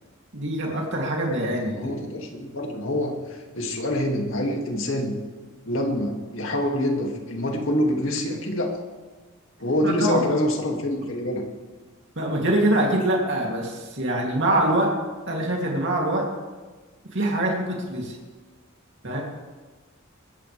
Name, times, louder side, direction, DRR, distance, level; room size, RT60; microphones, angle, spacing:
voice 1, 0.3-2.0 9.8-10.2 12.2-14.9 15.3-16.3 17.1-18.1 19.0-19.2, right 1 dB, 55° right, -1 dB, 2.8 m, -24 dB
voice 2, 1.8-5.2 5.7-8.8 9.6-11.4, left 1 dB, 65° left, 2 dB, 2.3 m, -26 dB
21.5 x 14.5 x 3.4 m, 1.3 s
head